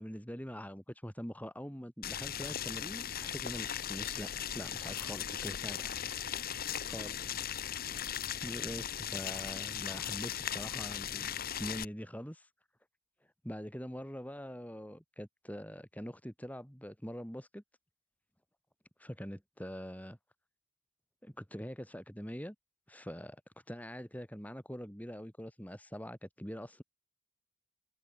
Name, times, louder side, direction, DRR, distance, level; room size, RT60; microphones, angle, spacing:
voice 1, 0.0-6.5 6.8-7.4 8.4-11.3 11.6-12.5 13.4-17.6 19.0-20.2 21.2-22.6 22.9-23.4 23.7-26.8, equal, 5° left, 7.0 m, -44 dB
Boiling, 2.0-11.8, left 9 dB, 45° left, 1.0 m, -38 dB
open air
head